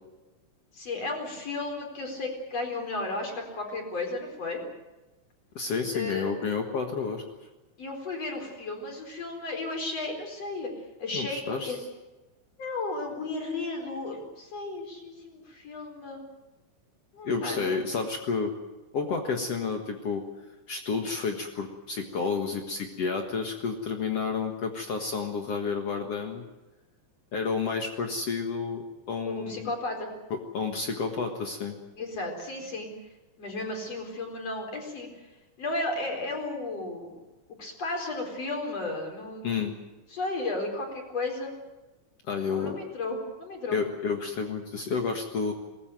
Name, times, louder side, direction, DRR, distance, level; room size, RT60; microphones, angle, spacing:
voice 1, 0.7-4.6 5.9-6.3 7.8-10.7 11.0-11.8 12.6-16.2 17.1-17.8 29.2-30.1 31.9-32.9 33.4-35.1 35.6-37.1 37.6-39.7 40.1-41.5 42.4-43.8, left 2 dB, 35° left, 2 dB, 5.1 m, -34 dB
voice 2, 5.5-7.2 11.1-11.7 17.2-18.5 18.9-20.2 20.7-26.4 27.3-29.7 30.3-31.8 39.4-39.7 42.3-42.8 43.7-45.5, left 5 dB, 85° left, 4 dB, 1.3 m, -30 dB
22.0 x 19.0 x 9.3 m, 1.1 s
omnidirectional pair, 5.6 m